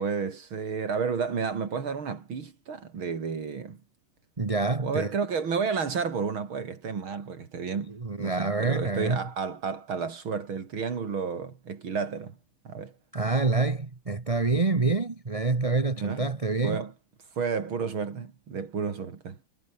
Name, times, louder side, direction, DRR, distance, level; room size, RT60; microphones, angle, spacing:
voice 1, 0.0-3.8 4.8-12.4 12.6-12.9 16.0-16.3 16.6-16.9 17.3-19.5, right 5 dB, 80° right, 3.5 m, -31 dB
voice 2, 4.4-5.1 8.0-9.2 13.1-16.8, right 3 dB, 20° right, 1.1 m, -26 dB
omnidirectional pair, 2.2 m